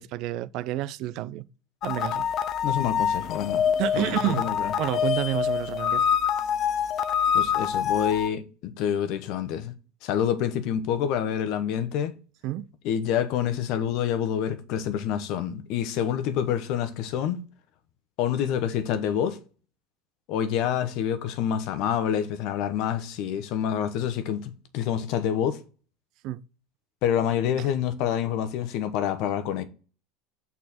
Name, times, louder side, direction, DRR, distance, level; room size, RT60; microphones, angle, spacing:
voice 1, 0.0-1.5 1.8-2.3 3.8-4.5 4.8-6.1 12.4-12.7 26.2-26.4 27.6-27.7, right 15 dB, 55° right, 0.4 m, -29 dB
sound 1, 1.8-8.3, left 8 dB, 45° left, 0.5 m, -26 dB
voice 2, 2.6-3.6 3.9-4.7 7.3-9.7 10.0-12.2 12.8-17.4 18.2-19.4 20.3-25.6 27.0-29.6, left 9 dB, 60° left, 1.0 m, -27 dB
6.4 x 4.3 x 4.2 m
supercardioid pair, 115°, 0 cm